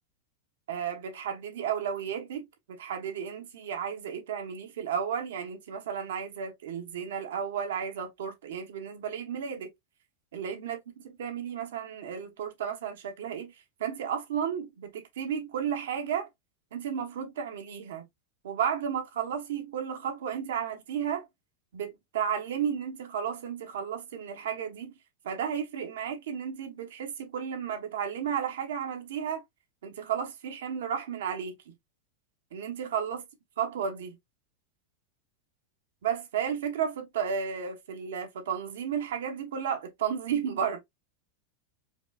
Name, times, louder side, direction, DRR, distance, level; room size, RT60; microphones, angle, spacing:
voice 1, 0.7-9.7 10.3-10.8 11.0-13.5 13.8-16.3 16.7-18.0 18.4-21.3 21.7-25.0 25.2-29.4 29.8-31.7 32.5-33.2 33.6-34.2 36.0-40.8, right 8 dB, 90° right, 1.1 m, -33 dB
4.8 x 2.4 x 2.3 m
supercardioid pair, 160°, 0 cm